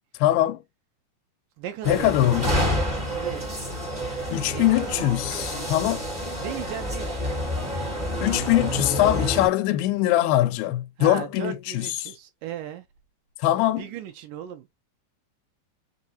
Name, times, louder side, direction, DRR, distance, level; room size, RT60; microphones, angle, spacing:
voice 1, 0.2-0.6 1.9-2.5 4.3-6.1 8.2-12.1 13.4-13.9, left 14 dB, 85° left, 2.5 m, -22 dB
voice 2, 1.6-2.3 2.6-3.4 4.3-4.7 6.4-7.3 11.0-12.9 13.8-14.7, right 10 dB, 80° right, 2.0 m, -36 dB
sound 1, 1.8-9.5, equal, 20° right, 1.6 m, -28 dB
6.0 x 2.6 x 2.8 m
omnidirectional pair, 4.2 m